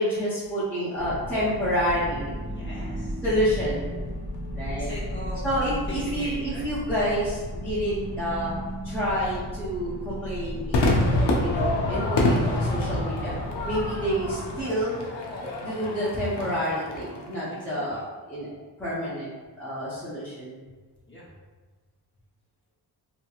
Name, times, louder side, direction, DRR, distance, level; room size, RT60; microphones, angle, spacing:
voice 1, 0.0-2.3 3.2-3.8 4.5-4.9 5.4-8.5 8.8-13.3 13.6-15.0 15.6-18.0 18.3-18.5 18.8-19.3 19.6-20.6, equal, 5° left, -10 dB, 0.8 m, -28 dB
sound 1, 1.0-14.6, equal, 60° left, 0.9 m, -39 dB
sound 2, 1.4-11.9, equal, 50° right, 0.6 m, -36 dB
voice 2, 2.5-3.2 4.7-5.4 5.9-6.7 17.5-18.0 21.1-21.3, left 1 dB, 30° left, -8 dB, 1.1 m, -41 dB
Crowd / Fireworks, 10.7-17.3, left 1 dB, 85° left, 0.6 m, -26 dB
2.9 x 2.8 x 2.4 m, 1.3 s
wide cardioid pair, 100°, 41 cm